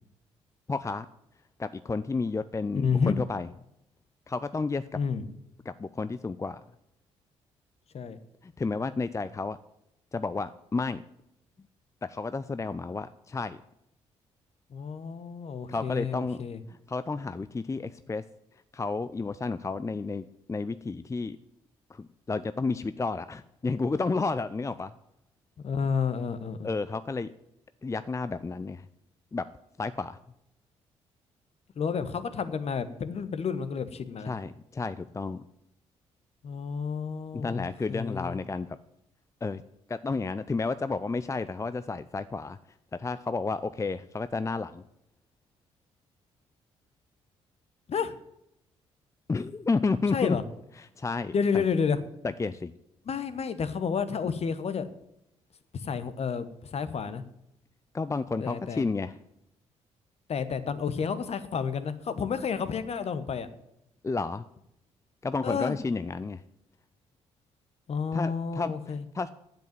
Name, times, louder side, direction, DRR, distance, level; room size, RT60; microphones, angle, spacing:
voice 1, 0.7-1.1 1.6-3.5 4.3-4.8 5.7-6.6 8.4-9.6 10.1-11.0 12.0-13.6 15.7-16.4 16.9-18.2 18.7-21.4 21.9-24.9 26.6-27.3 27.8-28.8 29.3-29.5 29.8-30.2 34.3-35.4 37.3-38.8 39.4-39.6 39.9-42.6 42.9-44.8 49.3-50.4 50.8-51.6 52.2-52.7 57.9-59.2 64.0-64.5 65.2-66.4 68.1-69.3, left 3 dB, 20° left, 14 dB, 0.5 m, -31 dB
voice 2, 2.7-3.1 4.9-5.2 7.9-8.2 14.7-16.6 25.6-26.7 31.8-34.4 36.4-38.4 47.9-48.2 50.1-50.4 51.3-52.0 53.1-54.9 55.7-57.2 58.4-58.8 60.3-63.5 65.4-65.8 67.9-69.0, left 6 dB, 45° left, 12 dB, 1.1 m, -30 dB
9.2 x 7.9 x 9.2 m, 0.82 s
hypercardioid pair, 45°, 14 cm